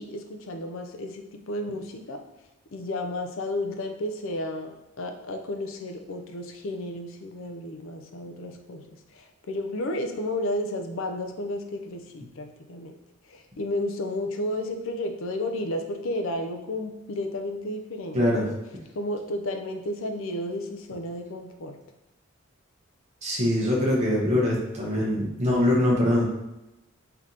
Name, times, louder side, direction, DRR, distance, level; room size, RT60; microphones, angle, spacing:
voice 1, 0.0-2.2 2.7-8.9 9.1-12.9 13.3-18.6 19.0-21.8, left 1 dB, 65° left, 5 dB, 0.5 m, -32 dB
voice 2, 18.1-18.5 23.2-26.2, left 1 dB, 30° right, -4 dB, 1.0 m, -23 dB
3.4 x 2.8 x 3.8 m, 0.93 s
head